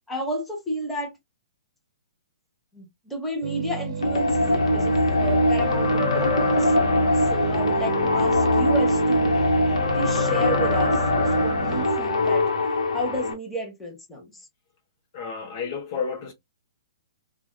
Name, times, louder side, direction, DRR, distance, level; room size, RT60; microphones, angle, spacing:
voice 1, 0.1-1.2 2.7-6.7 7.2-9.4 9.9-12.4 12.9-14.4, equal, 5° left, 1.0 m, -32 dB
sound 1, 3.4-11.9, right 4 dB, 70° right, 0.6 m, -32 dB
sound 2, 4.0-13.3, left 2 dB, 85° left, 1.1 m, -22 dB
voice 2, 15.1-16.3, left 6 dB, 40° left, 0.9 m, -31 dB
3.3 x 2.4 x 2.2 m
hypercardioid pair, 140°, 3 cm